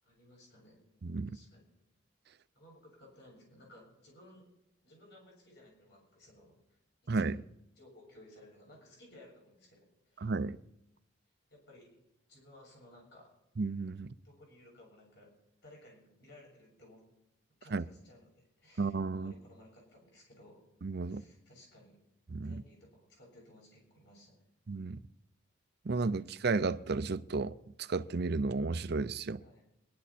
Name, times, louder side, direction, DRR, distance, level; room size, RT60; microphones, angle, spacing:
voice 1, 0.0-0.8 1.3-1.6 2.5-4.5 4.8-6.8 7.1-7.3 7.7-10.3 11.5-11.9 12.3-13.3 14.2-15.3 15.6-17.0 17.6-18.3 18.6-20.6 21.1-22.0 22.4-24.4 29.4-29.6, left 1 dB, 55° left, 6.9 m, -58 dB
voice 2, 1.0-1.4 7.1-7.4 10.2-10.6 13.6-14.1 17.7-17.8 18.8-19.3 20.8-21.2 22.3-22.6 24.7-25.0 25.8-29.4, right 3 dB, 50° right, 0.5 m, -33 dB
22.0 x 11.0 x 4.3 m
head